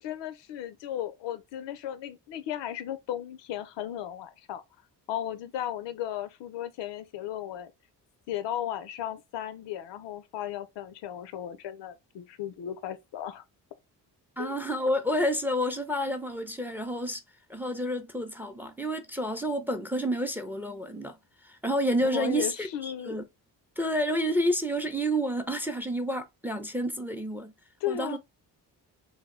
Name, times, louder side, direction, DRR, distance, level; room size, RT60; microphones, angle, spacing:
voice 1, 0.0-4.6 5.1-7.7 8.3-13.4 14.4-14.5 22.1-23.2 27.8-28.2, left 11 dB, 85° left, 0.5 m, -35 dB
voice 2, 14.4-17.2 17.5-21.2 21.4-23.2 23.8-27.5 27.9-28.2, equal, 5° right, 0.4 m, -29 dB
2.2 x 2.0 x 3.5 m
cardioid pair, 65°, 42 cm